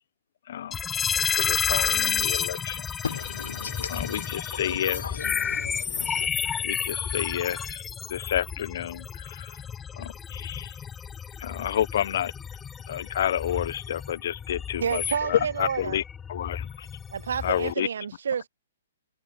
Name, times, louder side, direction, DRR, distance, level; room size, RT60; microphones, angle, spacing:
voice 1, 0.5-0.8 1.3-2.8 3.9-5.0 6.6-7.8 8.1-9.6 10.0-10.7 11.4-12.3 12.9-16.0 16.3-16.9 17.4-17.9, left 10 dB, 55° left, 1.4 m, -29 dB
sound 1, 0.7-17.7, left 7 dB, 10° left, 1.7 m, -31 dB
voice 2, 3.0-6.3, left 6 dB, 80° left, 5.4 m, -37 dB
voice 3, 14.8-16.0 17.1-18.5, right 7 dB, 75° right, 2.7 m, -29 dB
hypercardioid pair, 155°, 0 cm